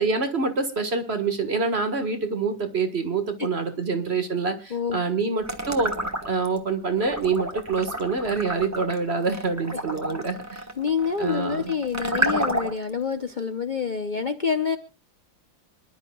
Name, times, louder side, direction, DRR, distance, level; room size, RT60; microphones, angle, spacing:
voice 1, 0.0-5.9 6.3-10.6 11.2-11.7, right 4 dB, 35° right, 7 dB, 1.7 m, -26 dB
sound 1, 5.4-6.6 7.0-12.9, right 1 dB, 10° right, 1.0 m, -30 dB
voice 2, 10.8-14.8, left 6 dB, 90° left, 7 dB, 0.4 m, -27 dB
26.5 x 11.0 x 2.4 m, 0.32 s
omnidirectional pair, 2.2 m